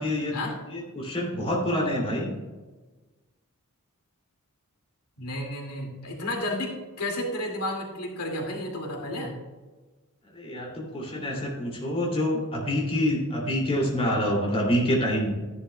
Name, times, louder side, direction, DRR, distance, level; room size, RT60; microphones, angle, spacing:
voice 1, 0.0-0.4 0.7-2.3 10.3-15.3, equal, 25° left, -2 dB, 2.7 m, -26 dB
voice 2, 5.2-9.4, left 1 dB, 85° left, 0 dB, 2.4 m, -32 dB
14.0 x 11.0 x 2.3 m, 1.3 s
head